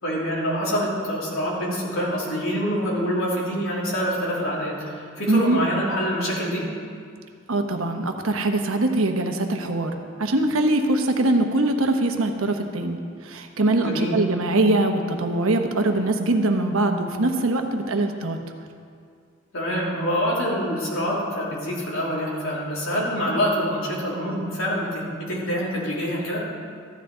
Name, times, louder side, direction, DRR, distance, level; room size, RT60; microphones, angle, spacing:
voice 1, 0.0-6.7 13.8-14.2 19.5-26.5, equal, 85° left, -5 dB, 3.2 m, -26 dB
voice 2, 5.3-5.6 7.5-9.9 10.2-18.4, right 2 dB, 80° right, 4 dB, 1.0 m, -22 dB
14.5 x 10.5 x 3.9 m, 2.2 s
head